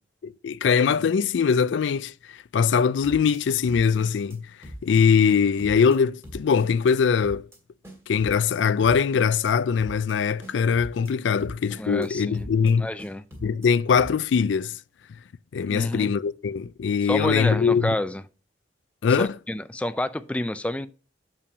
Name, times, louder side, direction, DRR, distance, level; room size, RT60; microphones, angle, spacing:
voice 1, 0.2-2.1 2.5-4.5 4.8-7.5 8.1-12.9 13.4-14.8 15.5-17.9 19.0-19.3, left 6 dB, 85° left, 0.4 m, -22 dB
sound 1, 3.0-3.4 3.7-4.4 4.6-5.0 5.3-6.0 6.2-6.9 7.2-7.6 7.8-8.5 8.8-9.5 9.8-10.1 10.4-11.1 11.4-12.1 12.3-12.7 13.0-13.7 13.9-14.3, equal, 15° right, 2.3 m, -41 dB
voice 2, 11.8-12.5 12.8-13.2 15.7-16.1 17.0-18.2 19.2-20.9, left 1 dB, 5° left, 0.3 m, -29 dB
7.0 x 5.6 x 4.9 m
head